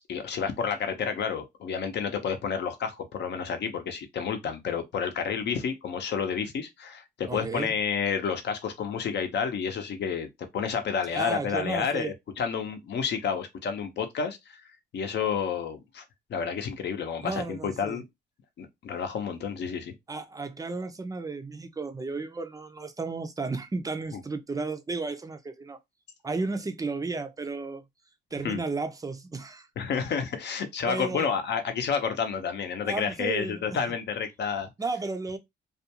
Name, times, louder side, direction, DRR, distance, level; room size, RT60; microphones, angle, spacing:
voice 1, 0.1-14.6 14.9-16.0 16.3-18.0 18.6-19.9 24.1-24.2 28.4-28.6 29.8-34.7, left 6 dB, 60° left, 0.7 m, -30 dB
voice 2, 7.3-7.7 11.1-12.1 17.2-18.0 20.1-25.8 26.2-27.8 28.3-29.7 30.9-31.3 32.8-33.8 34.8-35.4, right 3 dB, 20° right, 0.4 m, -33 dB
2.4 x 2.2 x 2.8 m
cardioid pair, 90°, 20 cm